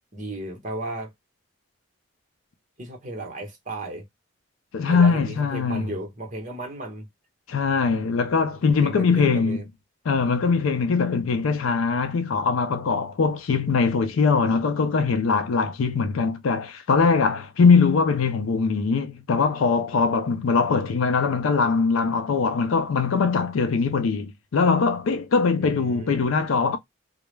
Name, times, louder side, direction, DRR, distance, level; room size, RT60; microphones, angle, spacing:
voice 1, 0.1-1.1 2.8-4.0 4.9-7.1 8.8-9.6 25.5-26.1, right 1 dB, 35° right, 0.9 m, -34 dB
voice 2, 4.7-5.9 7.5-9.6 10.1-26.8, left 5 dB, 85° left, 0.4 m, -21 dB
2.2 x 2.0 x 3.1 m
head